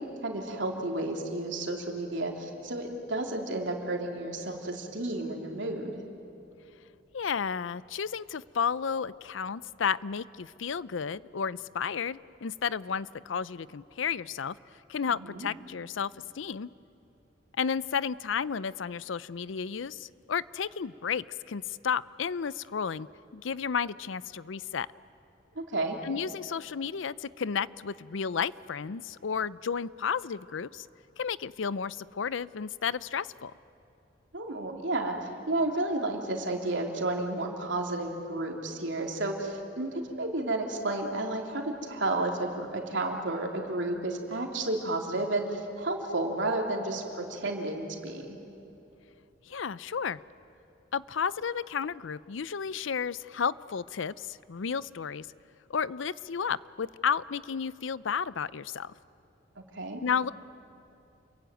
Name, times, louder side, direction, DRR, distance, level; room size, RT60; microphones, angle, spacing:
voice 1, 0.0-6.0 15.1-15.5 25.5-26.0 34.3-48.4 59.7-60.0, right 2 dB, 70° right, 1 dB, 3.3 m, -32 dB
voice 2, 7.1-14.6 14.9-16.7 17.6-23.1 23.3-24.9 26.0-30.9 31.2-33.5 49.5-50.2 50.9-55.3 55.7-58.9 60.0-60.3, left 6 dB, 80° left, 18 dB, 0.5 m, -32 dB
29.0 x 22.5 x 9.2 m, 2.8 s
head